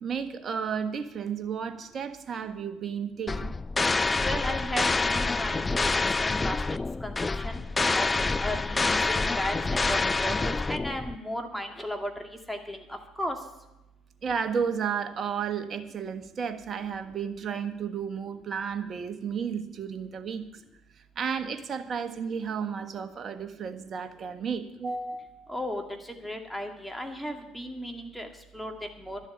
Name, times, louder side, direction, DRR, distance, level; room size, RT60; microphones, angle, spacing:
voice 1, 0.0-3.5 14.2-20.4 21.1-25.5, right 6 dB, 45° right, 9 dB, 1.3 m, -32 dB
sound 1, 3.3-11.2, left 3 dB, 25° left, 0.3 m, -27 dB
voice 2, 4.2-6.6 7.0-7.6 7.9-12.1 12.5-13.4 25.5-28.3 28.5-29.2, equal, 5° left, 4 dB, 2.2 m, -35 dB
12.0 x 7.3 x 8.8 m, 0.96 s
hypercardioid pair, 60°, 0 cm